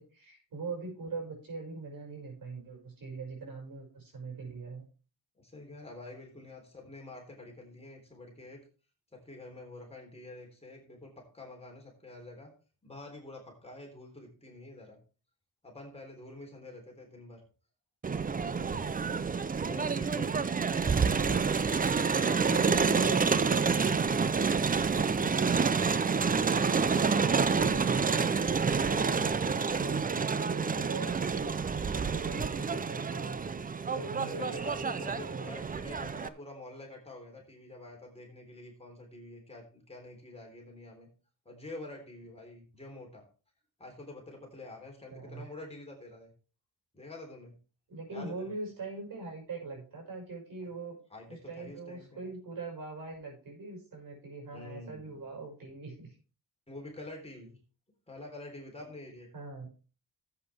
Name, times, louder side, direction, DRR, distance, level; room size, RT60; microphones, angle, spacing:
voice 1, 0.0-4.8 20.9-21.3 22.2-23.8 24.6-31.5 31.8-33.5 33.9-35.4 45.1-45.5 47.9-51.0 51.3-56.2 58.8-59.0 59.3-59.7, right 3 dB, 65° right, 0 dB, 6.2 m, -42 dB
voice 2, 5.4-8.6 9.1-12.5 12.8-15.0 15.6-17.4 18.2-18.9 19.5-20.4 21.0-21.6 22.2-23.4 34.2-41.1 41.5-43.2 43.8-46.3 46.9-47.6 48.1-48.5 50.6-50.7 51.1-52.3 54.5-55.2 56.7-57.6 58.1-59.3, left 2 dB, 15° left, 0 dB, 3.7 m, -47 dB
Crowd, 18.0-36.3, right 5 dB, 25° right, 0.5 m, -28 dB
13.0 x 8.3 x 3.5 m, 0.36 s
cardioid pair, 100°, 38 cm